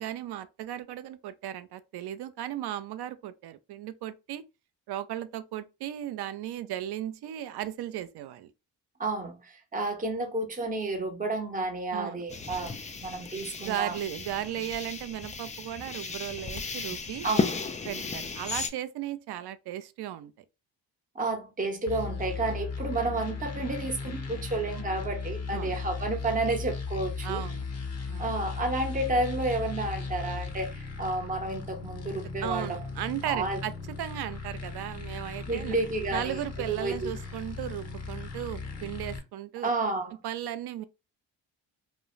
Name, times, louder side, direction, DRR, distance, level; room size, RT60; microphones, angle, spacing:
voice 1, 0.0-4.4 4.9-8.5 11.9-12.2 13.6-17.3 17.9-20.3 25.5-25.7 27.2-27.7 28.1-28.4 32.4-35.8 36.1-39.7 40.2-40.8, right 12 dB, 60° right, 0.5 m, -36 dB
voice 2, 9.0-12.7 13.0-14.0 17.2-17.5 21.1-27.4 28.2-32.8 33.2-33.6 35.5-37.1 39.6-40.1, right 2 dB, 20° right, 0.7 m, -31 dB
sound 1, 12.3-18.7, left 4 dB, 20° left, 0.3 m, -34 dB
sound 2, 21.9-39.2, left 4 dB, 35° left, 0.8 m, -37 dB
2.3 x 2.1 x 3.0 m
supercardioid pair, 55°, 46 cm